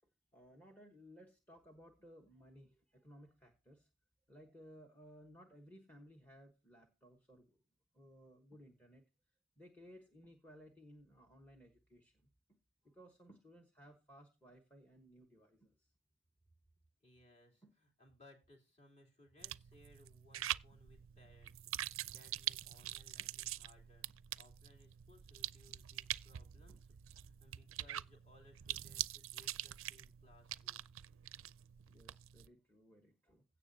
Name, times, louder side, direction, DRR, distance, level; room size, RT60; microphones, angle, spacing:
voice 1, 0.3-3.9 4.3-7.6 7.9-9.0 9.6-12.6 12.8-15.9 17.6-17.7 20.7-20.8 23.2-23.3 26.7-26.8 31.9-33.4, equal, 10° left, 3 dB, 1.2 m, -60 dB
voice 2, 17.0-26.8 27.1-30.9, left 1 dB, 30° left, -1 dB, 3.2 m, -65 dB
sound 1, 19.4-32.5, right 13 dB, 70° right, 0.4 m, -45 dB
16.5 x 6.8 x 2.7 m, 0.29 s
head